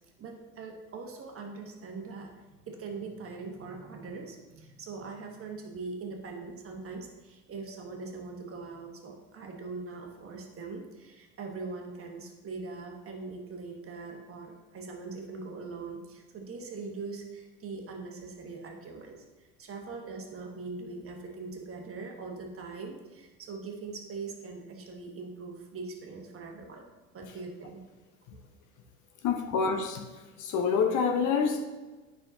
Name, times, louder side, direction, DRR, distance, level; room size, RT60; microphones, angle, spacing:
voice 1, 0.2-26.9 27.1-27.8, right 4 dB, 30° right, 2 dB, 1.4 m, -41 dB
voice 2, 29.2-30.0 30.4-31.7, left 5 dB, 45° left, 5 dB, 0.9 m, -27 dB
9.5 x 5.8 x 2.7 m, 1.2 s
hypercardioid pair, 80°, 43 cm